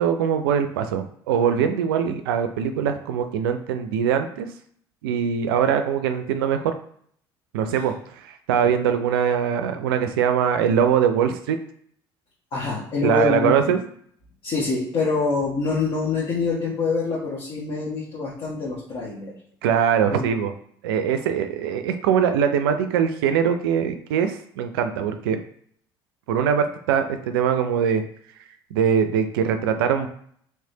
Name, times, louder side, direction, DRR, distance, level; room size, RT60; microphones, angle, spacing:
voice 1, 0.0-4.5 5.0-6.7 7.5-11.6 13.0-13.8 19.6-20.5 20.8-25.4 26.3-28.0 28.7-30.1, right 8 dB, 80° right, 8 dB, 0.4 m, -22 dB
voice 2, 12.5-13.7 14.4-19.3 20.1-20.3, left 4 dB, 50° left, -6 dB, 1.3 m, -25 dB
3.3 x 3.2 x 2.8 m, 0.62 s
hypercardioid pair, 65°, 12 cm